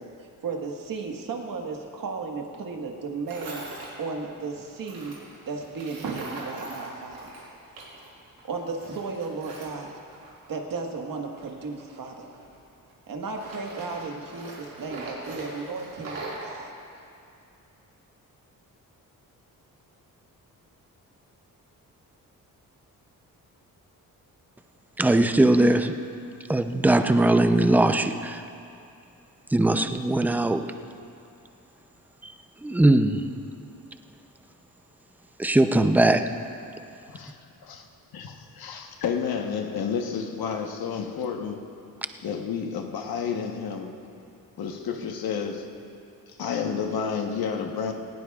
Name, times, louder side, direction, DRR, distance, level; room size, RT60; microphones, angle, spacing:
voice 1, 0.0-3.6 4.0-5.1 5.5-7.3 8.4-9.9 10.5-12.3 13.1-16.7, right 4 dB, 65° right, 1 dB, 1.6 m, -34 dB
Tools, 3.3-3.9 4.8-8.1 8.4-10.6 11.3-12.9 13.3-16.5, right 2 dB, 85° right, 3.8 m, -41 dB
voice 2, 25.0-26.0 26.5-28.4 29.5-30.6 32.2-32.3 32.6-33.3 35.4-36.3, right 1 dB, 5° right, 8 dB, 0.5 m, -20 dB
voice 3, 38.1-41.7 42.2-44.0 44.6-45.7 46.4-47.9, left 6 dB, 85° left, 3 dB, 1.2 m, -30 dB
18.5 x 17.0 x 2.4 m, 2.6 s
cardioid pair, 105°, 35 cm